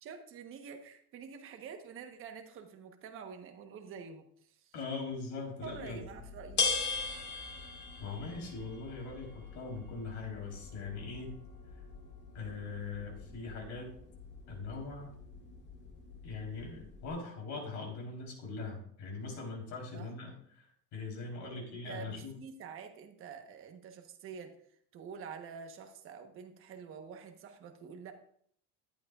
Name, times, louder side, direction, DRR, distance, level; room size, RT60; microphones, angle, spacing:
voice 1, 0.0-4.7 5.6-6.7 19.7-20.1 21.4-24.5 24.9-28.1, right 6 dB, 35° right, 5 dB, 1.2 m, -47 dB
voice 2, 4.7-6.0 8.0-11.4 12.3-14.0 14.5-15.1 16.2-22.4, left 4 dB, 55° left, -1 dB, 3.8 m, -41 dB
sound 1, 5.6-17.1, left 5 dB, 30° left, 2.1 m, -41 dB
14.0 x 11.5 x 2.4 m, 0.64 s
cardioid pair, 175°, 35 cm